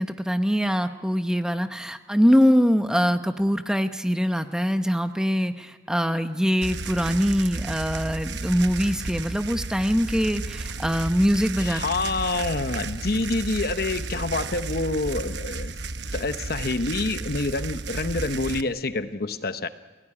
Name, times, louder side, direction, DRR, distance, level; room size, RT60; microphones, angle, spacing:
voice 1, 0.0-11.8, equal, 5° right, 8 dB, 0.9 m, -23 dB
sound 1, 6.6-18.6, right 3 dB, 70° right, 1.0 m, -33 dB
voice 2, 11.6-15.8 16.1-19.7, left 3 dB, 55° left, 11 dB, 0.9 m, -27 dB
29.0 x 18.0 x 9.9 m, 1.4 s
head